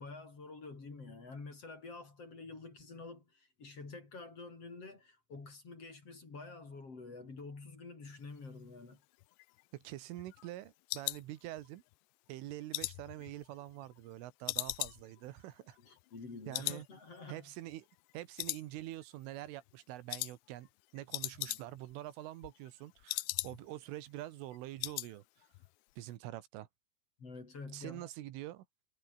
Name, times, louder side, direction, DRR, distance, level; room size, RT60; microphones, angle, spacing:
voice 1, 0.0-9.0 15.8-17.5 21.5-21.6 27.2-28.1, left 3 dB, 30° left, 5.3 m, -48 dB
sound 1, 9.2-11.9 12.3-14.1 14.5-16.3 16.5-16.9 17.1-17.2 17.7-18.1 18.4-19.2 19.4-19.7 20.1-20.4 20.7-20.8 21.0-21.9 22.2-23.8 24.1-24.2 24.5-25.1 25.4-25.7 26.0-26.1, left 22 dB, 90° left, 2.5 m, -40 dB
voice 2, 9.7-11.8 12.3-15.8 16.5-16.9 17.3-17.9 18.1-20.7 20.9-25.2 26.0-26.7 27.7-28.7, right 15 dB, 85° right, 3.9 m, -45 dB
omnidirectional pair, 5.6 m